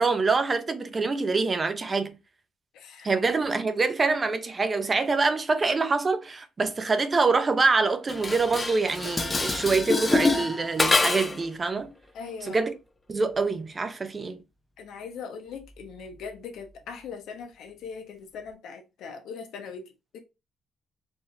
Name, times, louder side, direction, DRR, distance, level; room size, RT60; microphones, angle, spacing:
voice 1, 0.0-2.2 3.0-11.9 12.4-12.7 13.1-14.4, right 4 dB, 30° right, 0.7 m, -25 dB
voice 2, 2.7-3.1 12.1-12.6 14.8-20.2, left 6 dB, 80° left, 1.1 m, -40 dB
Dishes pots and pans, 8.1-11.5, left 3 dB, 20° left, 0.7 m, -25 dB
4.5 x 2.8 x 3.2 m
cardioid pair, 90°, 0 cm